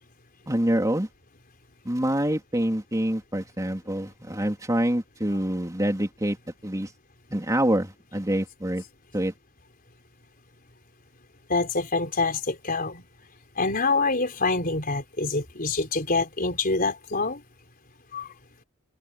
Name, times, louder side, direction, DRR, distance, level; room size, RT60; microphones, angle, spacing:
voice 1, 0.5-1.1 1.8-6.4 6.6-6.9 7.3-8.8 9.1-9.3, right 1 dB, 15° right, 3.3 m, -26 dB
voice 2, 11.5-13.0 13.6-17.4 18.1-18.3, left 3 dB, 40° left, 4.4 m, -26 dB
head